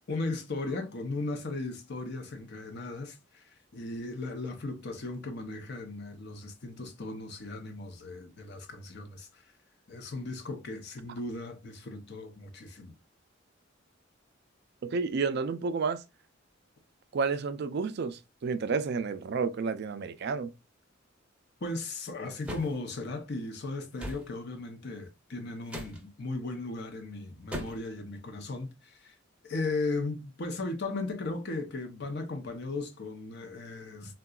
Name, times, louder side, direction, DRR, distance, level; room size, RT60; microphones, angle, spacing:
voice 1, 0.1-9.4 9.9-12.9 21.6-29.2 29.4-34.1, left 2 dB, 55° left, 0.7 m, -37 dB
voice 2, 14.8-16.0 17.1-20.5, right 5 dB, 55° right, 0.4 m, -31 dB
sound 1, 22.4-22.8 24.0-24.3 25.7-26.0 27.5-27.9, equal, 5° right, 0.7 m, -38 dB
3.7 x 2.2 x 2.3 m
head